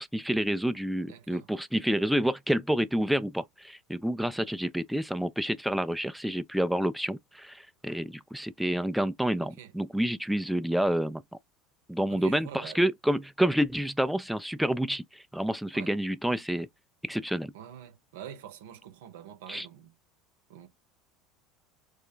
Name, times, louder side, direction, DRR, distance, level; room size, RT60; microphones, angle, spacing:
voice 1, 0.0-11.2 11.9-16.7 17.0-17.5 19.5-19.7, right 1 dB, ahead, 0.3 m, -29 dB
voice 2, 1.1-1.5 9.4-9.7 12.1-12.8 15.7-16.0 17.5-20.0 20.5-20.7, right 10 dB, 75° right, 0.7 m, -46 dB
3.3 x 2.2 x 3.6 m
hypercardioid pair, 75°, 0 cm